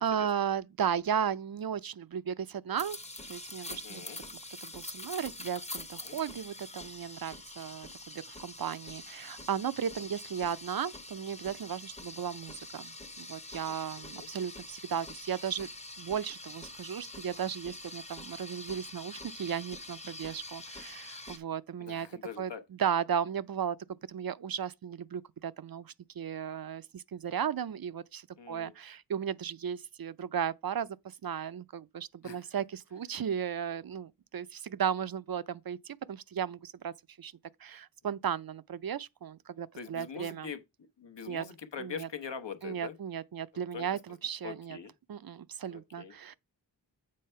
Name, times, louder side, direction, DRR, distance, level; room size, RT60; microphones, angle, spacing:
voice 1, 0.0-3.0 3.3-4.0 4.6-15.7 16.0-22.1 22.4-22.5 22.8-23.8 24.1-37.3 37.6-40.5 41.3-41.4 41.8-42.1 42.6-44.8 45.1-46.3, right 8 dB, 55° right, 0.5 m, -35 dB
sound 1, 2.8-21.4, left 2 dB, 15° left, 0.7 m, -45 dB
voice 2, 3.7-4.2 6.0-6.2 13.7-14.3 21.8-22.6 28.4-28.7 32.2-32.4 39.7-40.6 41.0-43.0 43.5-43.9 44.4-44.9 45.7-46.1, left 6 dB, 75° left, 1.0 m, -43 dB
7.6 x 3.3 x 5.5 m
wide cardioid pair, 50°, 43 cm